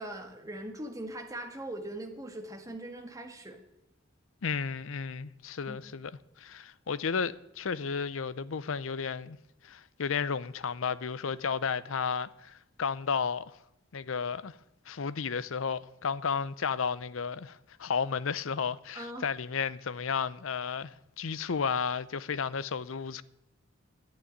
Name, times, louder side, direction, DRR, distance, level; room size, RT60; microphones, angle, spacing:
voice 1, 0.0-3.6 5.7-5.8 18.9-19.3, right 1 dB, 15° right, 1.7 m, -40 dB
voice 2, 4.4-6.1 6.4-9.4 9.6-13.6 13.9-14.6 14.9-23.2, left 6 dB, 80° left, 0.6 m, -33 dB
11.0 x 9.6 x 10.0 m
head